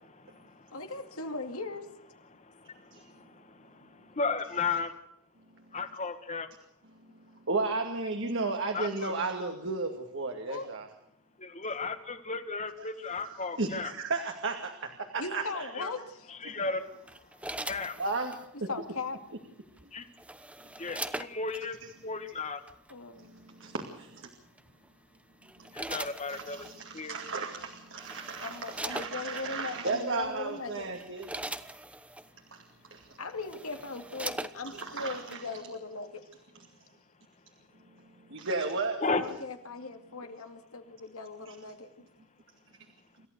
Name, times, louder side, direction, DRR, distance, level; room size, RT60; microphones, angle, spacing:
voice 1, 0.7-1.9 10.5-10.7 15.2-16.3 18.7-19.2 22.9-23.3 28.4-30.9 33.2-36.2 39.1-41.9, left 3 dB, 70° left, 6 dB, 2.3 m, -39 dB
voice 2, 4.2-4.9 5.7-6.5 8.7-9.1 11.4-13.9 15.7-15.9 16.3-16.8 17.7-17.9 19.9-20.0 20.8-21.8 22.0-22.6 25.7-26.6 26.9-27.2 39.0-39.2, left 4 dB, 30° left, 9 dB, 1.8 m, -33 dB
voice 3, 7.5-10.9 13.6-15.7 16.4-16.5 18.0-18.3 20.8-20.9 23.2-24.3 25.6-25.7 26.3-31.3 32.5-32.6 32.9-33.1 34.6-35.4 38.3-39.0 41.5-41.6, right 3 dB, 55° right, 4 dB, 2.3 m, -34 dB
sound 1, 17.1-18.5 19.8-21.6 22.7-22.9 24.6-24.9 25.4-26.8 27.6-27.7 28.0-29.5 30.2-30.4 30.8-32.3 33.0-33.1 33.4-34.9 35.3-35.4, right 1 dB, 5° right, 0.9 m, -40 dB
27.0 x 14.5 x 6.7 m, 0.76 s
head